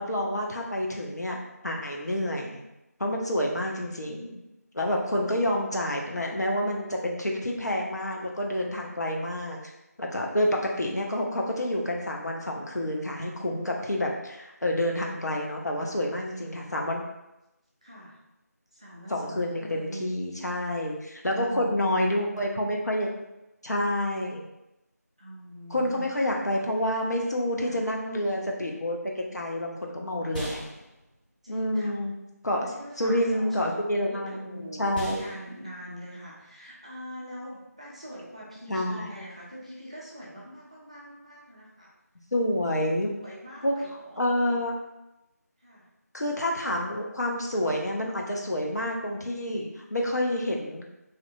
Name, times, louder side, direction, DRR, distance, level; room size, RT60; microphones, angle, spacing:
voice 1, 0.0-1.4 1.6-2.6 3.0-4.4 4.7-9.6 10.0-17.0 19.1-23.1 23.6-24.4 25.7-30.6 31.5-32.1 32.4-32.7 33.0-35.2 38.7-39.1 42.3-43.1 43.6-43.8 44.2-44.7 46.1-50.8, left 1 dB, 75° left, -1 dB, 0.6 m, -28 dB
voice 2, 15.6-16.9 17.8-18.2 18.7-20.1 20.7-20.8 21.3-22.1 25.2-26.1 27.6-27.8 31.4-31.9 32.6-41.9 42.5-42.8 43.1-44.2 45.6-45.9, equal, 25° right, -6 dB, 0.4 m, -43 dB
sound 1, 29.2-38.6, equal, 30° left, 0.7 m, -44 dB
2.6 x 2.1 x 2.6 m, 0.93 s
figure-of-eight pair, 170°, 9 cm